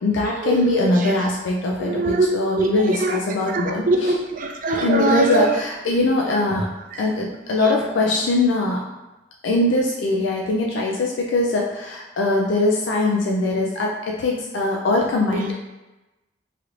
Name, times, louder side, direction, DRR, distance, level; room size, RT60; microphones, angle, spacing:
voice 1, 0.0-4.2 4.8-6.7 7.0-8.8 9.4-15.5, left 2 dB, 85° left, -1 dB, 0.4 m, -22 dB
voice 2, 1.9-2.3 2.6-2.7 3.0-3.1 3.5-5.4, right 3 dB, 45° right, 3 dB, 0.4 m, -21 dB
3.2 x 3.0 x 2.4 m, 1.0 s
head